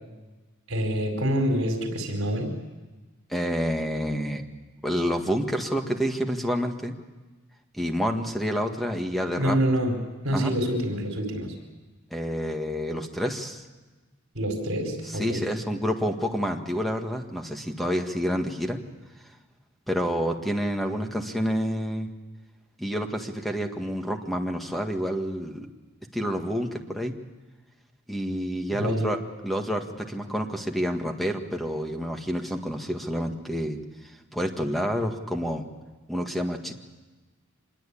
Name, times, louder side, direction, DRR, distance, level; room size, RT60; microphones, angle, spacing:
voice 1, 0.7-2.5 9.4-10.0 10.2-11.5 14.3-15.4 28.7-29.1, equal, 65° right, 4 dB, 4.7 m, -26 dB
voice 2, 3.3-4.4 4.8-6.9 7.7-9.6 10.3-10.5 12.1-13.6 15.1-18.8 19.9-22.1 22.8-25.7 26.1-27.1 28.1-29.2 29.4-33.8 34.3-35.6 36.1-36.7, equal, ahead, 4 dB, 1.8 m, -28 dB
25.5 x 21.5 x 8.6 m, 1.2 s
head